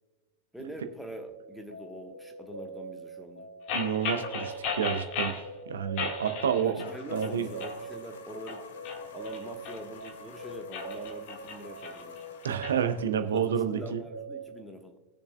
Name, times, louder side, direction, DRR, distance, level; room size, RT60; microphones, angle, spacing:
voice 1, 0.5-3.5 6.6-8.7 9.1-12.2 13.3-15.0, equal, ahead, 3 dB, 1.3 m, -44 dB
sound 1, 1.3-14.5, right 3 dB, 85° left, 2.5 m, -44 dB
sound 2, 3.7-5.4 6.0-7.0 7.2-7.8 8.3-10.1 10.6-12.8, left 5 dB, 45° left, 1.6 m, -36 dB
voice 2, 3.7-5.4 5.7-7.5 12.4-14.0, right 8 dB, 65° right, 8 dB, 0.8 m, -29 dB
sound 3, 6.8-13.3, left 5 dB, 60° left, 1.0 m, -51 dB
21.0 x 7.0 x 2.3 m, 1.2 s
figure-of-eight pair, 90°, 0 cm